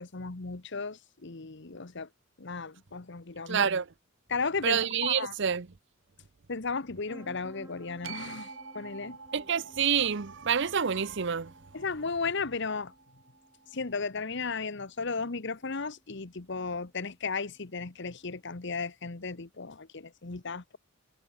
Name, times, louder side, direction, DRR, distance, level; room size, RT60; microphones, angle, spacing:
voice 1, 0.0-2.1 2.4-3.7 4.3-5.3 6.5-9.2 11.7-12.9 13.7-20.8, left 4 dB, 60° left, 1.2 m, -35 dB
voice 2, 3.5-3.8 4.6-5.7 9.3-11.5, right 7 dB, 65° right, 0.8 m, -27 dB
sound 1, 7.1-18.6, equal, 10° right, 5.2 m, -56 dB
sound 2, 8.0-14.3, right 5 dB, 80° right, 7.3 m, -49 dB
head